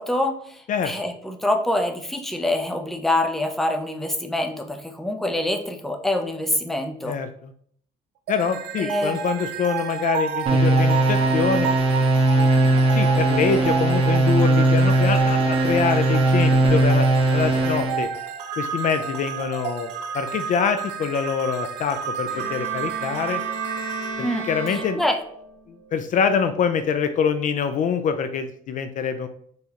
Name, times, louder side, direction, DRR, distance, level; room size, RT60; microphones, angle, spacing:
voice 1, 0.0-0.6 0.8-7.2 8.8-9.2 24.2-25.2, left 1 dB, ahead, 4 dB, 0.5 m, -25 dB
voice 2, 7.0-7.5 8.3-11.7 12.3-12.5 12.9-18.1 18.6-19.9 20.1-23.4 24.5-25.0 25.7-29.3, left 6 dB, 50° left, 9 dB, 0.4 m, -25 dB
sound 1, 8.3-25.4, right 7 dB, 90° right, 0.5 m, -31 dB
sound 2, 10.5-18.0, right 1 dB, 35° right, 1.3 m, -19 dB
Bowed string instrument, 22.3-25.5, right 3 dB, 50° right, 1.6 m, -34 dB
4.5 x 3.2 x 2.8 m, 0.62 s
cardioid pair, 110°, 17 cm